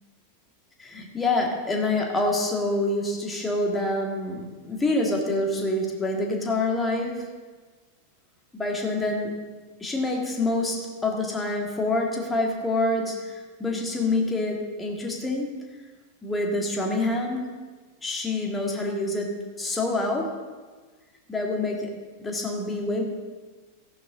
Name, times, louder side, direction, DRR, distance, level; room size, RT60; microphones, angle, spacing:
voice 1, 0.8-7.3 8.5-9.4 9.8-15.6 16.2-17.6 18.0-20.4 21.3-21.9 22.2-23.0, left 2 dB, 10° left, 0 dB, 2.1 m, -27 dB
14.5 x 10.5 x 3.8 m, 1.4 s
figure-of-eight pair, 90°, 0 cm